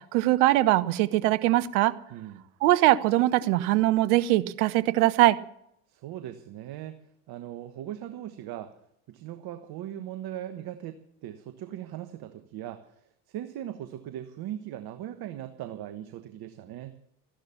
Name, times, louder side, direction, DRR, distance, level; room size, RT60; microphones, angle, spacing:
voice 1, 0.0-1.9 2.6-5.4, right 16 dB, 70° right, 16 dB, 0.9 m, -22 dB
voice 2, 2.1-2.4 5.9-7.0 7.3-8.7 9.1-12.9 13.3-16.9, right 12 dB, 50° right, 10 dB, 1.3 m, -39 dB
14.5 x 11.5 x 7.1 m, 0.73 s
hypercardioid pair, 70°, 46 cm